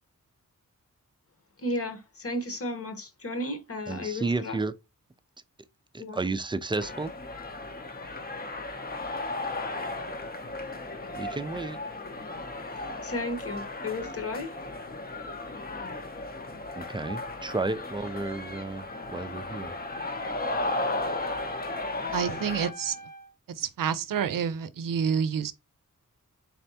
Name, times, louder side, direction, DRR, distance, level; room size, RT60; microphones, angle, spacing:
voice 1, 1.6-4.6 6.0-6.2 13.0-14.5, left 1 dB, 45° left, 1.0 m, -33 dB
voice 2, 3.9-4.7 5.9-7.1 11.2-11.8 16.7-19.7, right 3 dB, 15° right, 0.3 m, -32 dB
sound 1, 6.8-22.7, left 2 dB, 30° left, 0.6 m, -35 dB
Wind instrument woodwind instrument, 18.9-23.3, equal, 70° left, 1.7 m, -45 dB
voice 3, 22.1-23.0 23.6-25.5, right 7 dB, 90° right, 0.5 m, -28 dB
4.2 x 3.4 x 2.7 m
wide cardioid pair, 145°, 32 cm